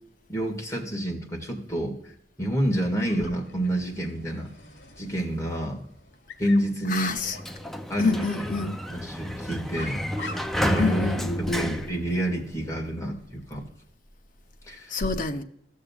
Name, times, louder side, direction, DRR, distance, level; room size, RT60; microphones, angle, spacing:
voice 1, 0.3-1.9 2.4-4.5 5.0-5.9 6.4-7.1 7.9-10.0 10.6-11.1 11.4-13.6 14.7-14.9, right 1 dB, 20° left, 2.0 m, -28 dB
Dog, 3.1-13.6, left 2 dB, 80° left, 1.9 m, -47 dB
voice 2, 6.9-7.4 8.0-8.8 10.8-11.7 14.9-15.4, left 3 dB, 50° left, 0.7 m, -27 dB
Sliding door, 7.2-12.8, equal, ahead, 0.4 m, -31 dB
14.5 x 6.5 x 2.4 m
head